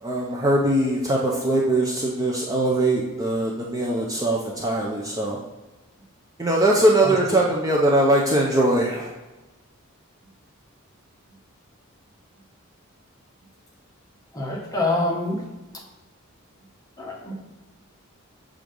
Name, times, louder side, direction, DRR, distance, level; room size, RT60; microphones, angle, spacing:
voice 1, 0.0-5.4 6.4-9.1, right 1 dB, 15° right, -2 dB, 0.6 m, -21 dB
voice 2, 7.0-7.4 14.3-15.4 17.0-17.3, left 2 dB, 15° left, -2 dB, 1.1 m, -26 dB
6.3 x 3.7 x 5.2 m, 1.1 s
head